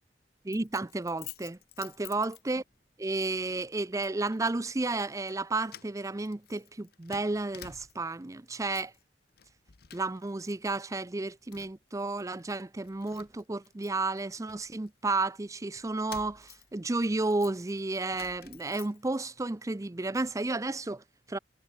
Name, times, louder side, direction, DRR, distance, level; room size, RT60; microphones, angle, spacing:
voice 1, 0.4-2.6 3.0-8.9 9.9-21.4, right 2 dB, 20° right, 0.5 m, -32 dB
Keys jangling, 0.5-2.8 3.2-3.4 4.0-4.6 4.9-5.4 5.7-8.2 8.5-9.0 9.3-10.5 10.8-11.9 12.4-12.5 12.8-15.2 15.8-19.3 19.7-20.3, left 10 dB, 60° left, 1.0 m, -51 dB
head